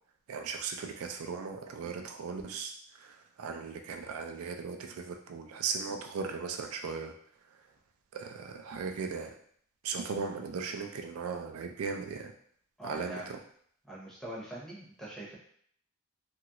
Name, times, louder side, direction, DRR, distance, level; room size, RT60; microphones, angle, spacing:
voice 1, 0.3-2.7 3.0-7.1 8.1-9.3 9.8-12.3 12.8-13.4, right 5 dB, 80° right, 5 dB, 0.3 m, -37 dB
voice 2, 12.8-13.3 13.8-15.4, right 1 dB, ahead, -5 dB, 0.7 m, -43 dB
2.9 x 2.4 x 2.8 m, 0.63 s
head